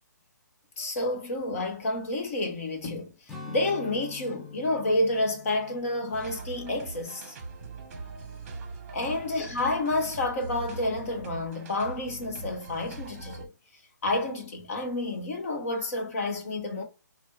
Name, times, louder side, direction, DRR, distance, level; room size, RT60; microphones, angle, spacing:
voice 1, 0.8-3.1 3.5-7.3 8.9-13.5 14.0-16.8, left 2 dB, 50° left, 1.2 m, -29 dB
Strum, 3.3-8.0 8.4-8.6, left 4 dB, 5° left, 0.4 m, -47 dB
sound 1, 6.1-13.5, right 3 dB, 40° right, 0.9 m, -41 dB
4.3 x 2.2 x 2.3 m
hypercardioid pair, 155°, 10 cm